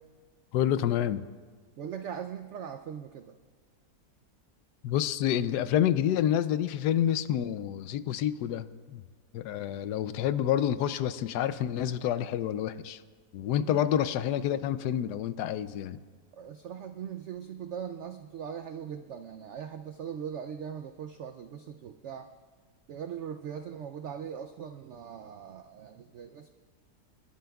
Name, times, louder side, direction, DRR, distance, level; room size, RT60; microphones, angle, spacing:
voice 1, 0.5-1.2 4.8-9.0 9.3-13.0 13.3-16.0, left 10 dB, 80° left, 1.1 m, -28 dB
voice 2, 1.8-3.3 13.6-13.9 16.3-22.3 22.9-26.5, right 8 dB, 85° right, 0.6 m, -40 dB
29.5 x 11.5 x 2.3 m
omnidirectional pair, 1.8 m